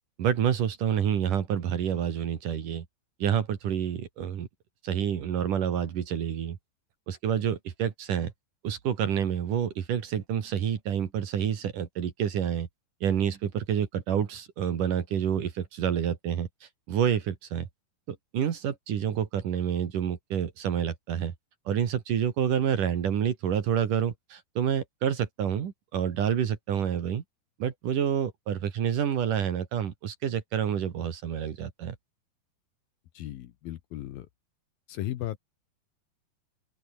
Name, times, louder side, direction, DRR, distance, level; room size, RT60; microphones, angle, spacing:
voice 1, 0.2-2.8 3.2-4.5 4.8-6.6 7.1-8.3 8.6-12.7 13.0-17.7 18.1-21.3 21.7-27.2 27.6-32.0, right 9 dB, 55° right, 3.3 m, -28 dB
voice 2, 33.1-34.3 34.9-35.4, left 13 dB, 70° left, 2.6 m, -35 dB
open air
omnidirectional pair, 4.8 m